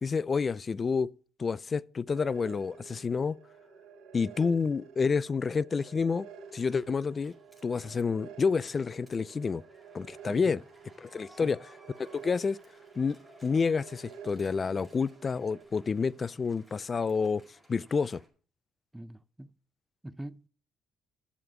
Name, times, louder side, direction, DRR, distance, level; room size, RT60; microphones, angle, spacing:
voice 1, 0.0-1.1 1.4-3.4 4.1-6.3 6.5-7.3 7.6-9.6 9.9-10.6 11.0-11.6 12.0-12.6 13.0-17.4 17.7-18.2, left 5 dB, 35° left, 0.4 m, -29 dB
sound 1, 2.1-15.6, right 6 dB, 80° right, 3.0 m, -50 dB
sound 2, 6.1-18.3, equal, 10° left, 4.9 m, -60 dB
voice 2, 11.3-11.6 18.9-19.5 20.0-20.5, right 1 dB, 10° right, 0.6 m, -44 dB
11.0 x 7.1 x 5.8 m
cardioid pair, 90°, 0 cm